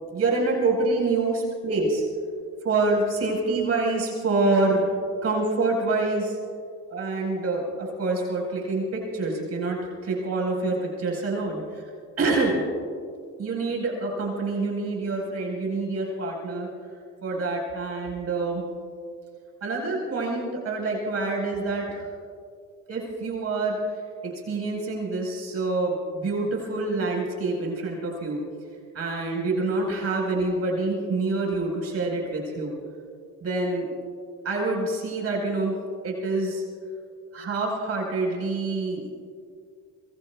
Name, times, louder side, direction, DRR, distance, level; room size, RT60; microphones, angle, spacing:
voice 1, 0.1-2.0 2.6-4.9 5.2-6.4 6.9-11.6 12.2-12.6 13.4-16.7 17.2-18.6 19.6-22.1 22.9-23.8 24.2-28.4 28.9-32.7 33.4-33.9 34.4-35.7 36.0-36.6 37.3-39.3, right 3 dB, 55° right, -1 dB, 4.7 m, -26 dB
25.0 x 22.5 x 2.3 m, 2.2 s
cardioid pair, 90°, 30 cm